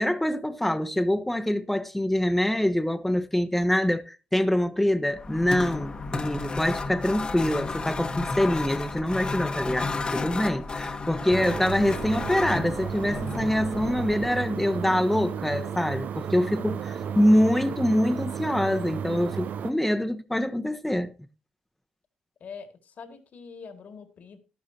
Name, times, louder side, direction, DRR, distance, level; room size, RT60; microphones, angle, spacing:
voice 1, 0.0-21.1, left 1 dB, 5° left, 1.0 m, -25 dB
sound 1, 5.1-14.5, left 3 dB, 30° left, 1.2 m, -33 dB
sound 2, 11.3-19.7, right 8 dB, 65° right, 0.6 m, -33 dB
voice 2, 22.4-24.4, left 5 dB, 60° left, 2.0 m, -44 dB
12.0 x 12.0 x 2.8 m
cardioid pair, 90°, 3 cm